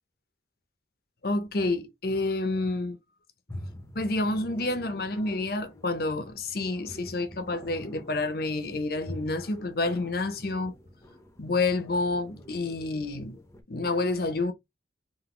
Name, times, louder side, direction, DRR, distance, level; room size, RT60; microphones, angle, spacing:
voice 1, 1.2-3.0 3.9-10.7 11.4-13.4 13.7-14.5, left 2 dB, 55° left, 0.7 m, -29 dB
sound 1, 3.5-13.6, equal, 15° left, 0.7 m, -46 dB
3.9 x 2.6 x 3.6 m
head